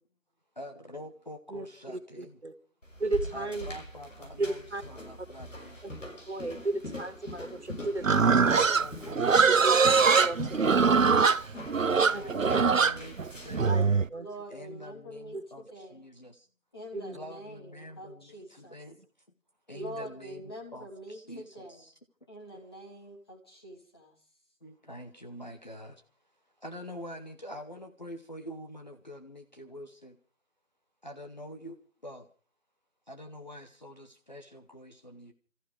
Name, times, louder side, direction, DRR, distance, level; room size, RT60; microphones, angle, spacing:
voice 1, 0.6-2.4 3.3-5.8 8.2-9.8 11.8-13.8 14.5-16.5 17.1-19.0 19.7-21.9 24.6-26.0 26.6-30.2 31.0-32.3 33.1-35.3, equal, 35° left, 4 dB, 1.1 m, -45 dB
voice 2, 2.2-2.5 3.0-3.7 4.4-4.8 5.8-6.0 6.3-8.6 9.6-11.2 12.1-12.5 13.6-13.8 14.1-14.3 15.3-15.4 16.9-17.2 19.8-19.9, right 2 dB, 55° right, 10 dB, 2.1 m, -35 dB
sound 1, 2.8-13.7, left 1 dB, 70° left, 5.9 m, -42 dB
Livestock farm animals working animals, 8.0-14.1, right 5 dB, 80° right, 0.7 m, -22 dB
voice 3, 12.0-12.5 14.2-16.0 16.7-18.8 19.7-21.8 22.3-24.1, right 1 dB, 20° left, -2 dB, 3.0 m, -45 dB
29.5 x 14.5 x 3.3 m, 0.38 s
figure-of-eight pair, 165°, 39 cm